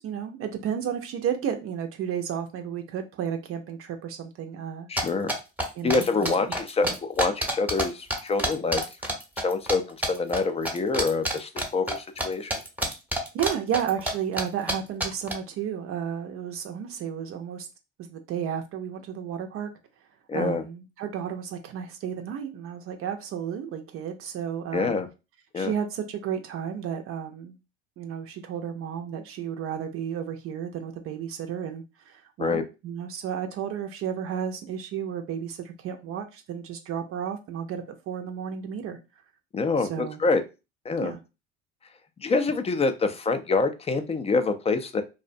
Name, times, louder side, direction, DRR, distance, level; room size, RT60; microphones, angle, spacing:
voice 1, 0.0-4.9 5.8-6.3 6.8-6.9 13.3-17.7 18.0-19.7 20.3-25.0 25.5-27.6 28.0-39.0 39.8-40.2 41.0-41.2, right 8 dB, 50° right, 0.5 m, -32 dB
voice 2, 4.9-5.3 5.8-8.8 9.4-12.6 20.3-20.6 24.7-25.1 25.5-25.7 32.4-32.6 39.5-40.4 40.8-41.1 42.2-45.0, left 4 dB, 20° left, 0.4 m, -26 dB
sound 1, 5.0-7.8 8.1-9.7 10.0-10.4 10.6-12.2 12.5-14.1 14.4-14.5 14.7-14.8 15.0-15.3, right 1 dB, 5° right, 0.8 m, -27 dB
2.5 x 2.0 x 2.5 m
hypercardioid pair, 70°, 30 cm